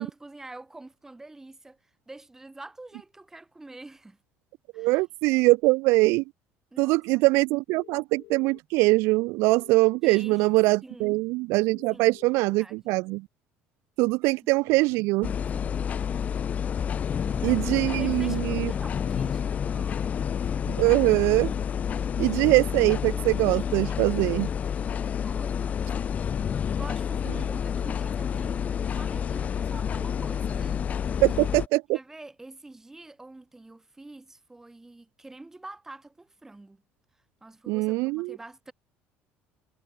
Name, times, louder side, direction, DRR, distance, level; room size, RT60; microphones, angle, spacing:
voice 1, 0.0-1.8 2.1-4.2 4.7-5.0 6.7-7.3 10.0-10.5 10.8-11.1 11.9-12.2 12.5-12.9 15.5-15.8 17.1-17.7 18.0-20.2 20.9-21.0 25.2-25.9 26.7-30.8 31.1-31.2 31.9-36.8 37.4-38.7, right 2 dB, 10° right, 4.5 m, -46 dB
voice 2, 4.8-6.2 6.8-13.3 14.0-15.3 17.4-18.7 20.7-21.5 22.2-24.5 31.2-32.0 37.7-38.4, right 24 dB, 80° right, 0.3 m, -23 dB
sound 1, 7.7-8.6 9.6-10.6 11.5-12.5, left 20 dB, 75° left, 3.7 m, -50 dB
sound 2, 15.2-31.7, left 8 dB, 35° left, 1.0 m, -29 dB
cardioid pair, 130°, 4 cm